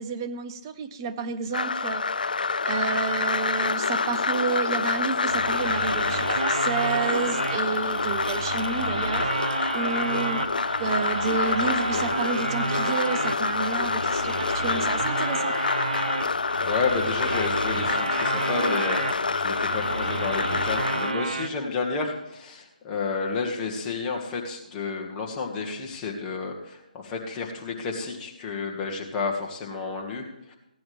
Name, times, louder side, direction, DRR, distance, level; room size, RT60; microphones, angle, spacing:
voice 1, 0.0-2.2 2.6-10.4 10.8-15.5, right 5 dB, 30° right, 9 dB, 0.8 m, -30 dB
sound 1, 1.5-21.1, left 4 dB, 80° left, 0.4 m, -27 dB
sound 2, 5.3-21.5, right 3 dB, 70° right, 1.0 m, -31 dB
voice 2, 16.6-30.5, left 4 dB, 20° left, -1 dB, 1.8 m, -31 dB
15.5 x 10.0 x 3.4 m, 0.86 s
figure-of-eight pair, 155°, 5 cm